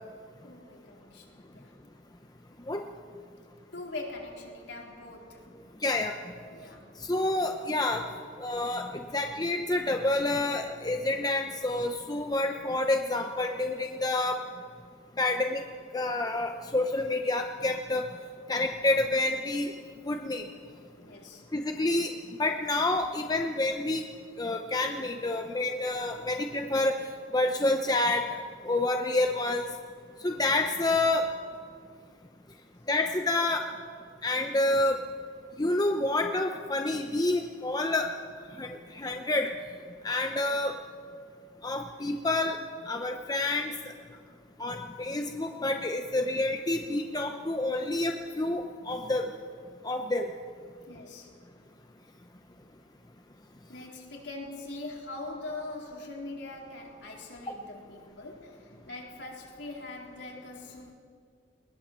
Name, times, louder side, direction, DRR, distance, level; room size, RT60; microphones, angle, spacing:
voice 1, 0.4-1.7 3.7-5.5 6.5-6.9 20.9-21.5 41.4-41.5 50.9-51.4 53.7-60.9, left 2 dB, 65° left, -1 dB, 4.1 m, -42 dB
voice 2, 5.8-6.2 7.1-8.1 8.4-14.4 15.2-15.6 15.9-18.1 18.5-19.7 20.1-20.5 21.5-22.1 22.4-24.0 24.4-27.0 27.3-29.6 30.2-31.3 32.9-33.7 34.2-35.0 35.6-38.1 38.6-39.5 40.0-40.8 41.6-42.6 42.8-43.8 44.6-49.3 49.8-50.3, left 2 dB, 20° left, 4 dB, 0.8 m, -28 dB
20.5 x 20.0 x 7.5 m, 2.2 s
head